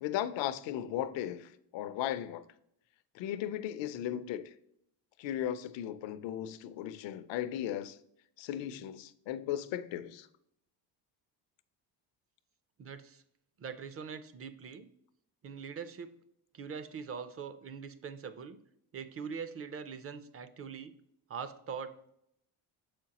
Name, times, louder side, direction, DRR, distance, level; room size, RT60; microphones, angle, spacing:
voice 1, 0.0-2.4 3.1-4.5 5.2-8.0 8.4-10.3, left 11 dB, 70° left, 0.6 m, -36 dB
voice 2, 12.8-13.2 13.6-14.9 15.4-16.2 16.5-18.6 18.9-20.9 21.3-22.1, right 6 dB, 30° right, 0.5 m, -42 dB
6.9 x 5.1 x 2.9 m
cardioid pair, 100°, 46 cm